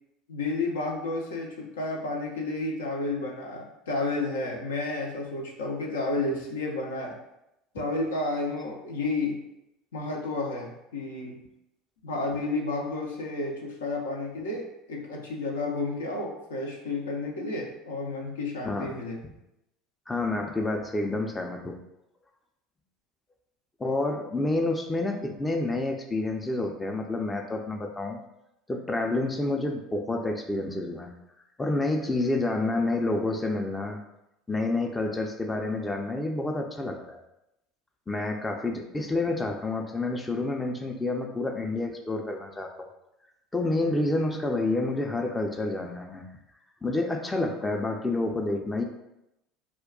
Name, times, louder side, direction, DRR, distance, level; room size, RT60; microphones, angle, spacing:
voice 1, 0.3-7.2 7.7-9.4 9.9-11.4 12.0-19.2, left 2 dB, 80° left, 0 dB, 0.4 m, -31 dB
voice 2, 18.6-19.0 20.1-21.8 23.8-28.2 28.7-31.1 31.6-34.0 34.5-37.2 38.1-42.9 43.5-46.2 46.8-48.8, left 2 dB, 15° left, 3 dB, 0.4 m, -29 dB
2.2 x 2.2 x 3.6 m, 0.87 s
hypercardioid pair, 70°, 0 cm